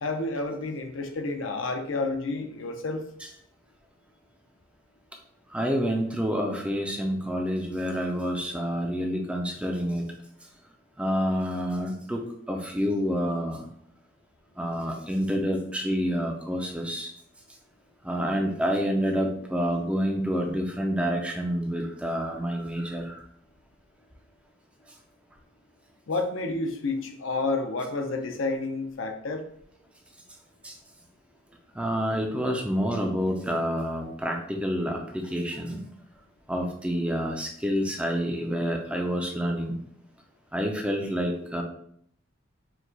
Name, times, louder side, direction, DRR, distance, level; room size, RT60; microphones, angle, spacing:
voice 1, 0.0-3.0 26.1-29.4, left 3 dB, 70° left, 5 dB, 0.6 m, -30 dB
voice 2, 5.5-10.1 11.0-13.6 14.6-17.1 18.0-23.2 30.6-30.7 31.8-35.8 36.5-39.8 40.5-41.6, equal, 5° right, 1 dB, 0.4 m, -28 dB
4.6 x 2.3 x 3.9 m, 0.66 s
head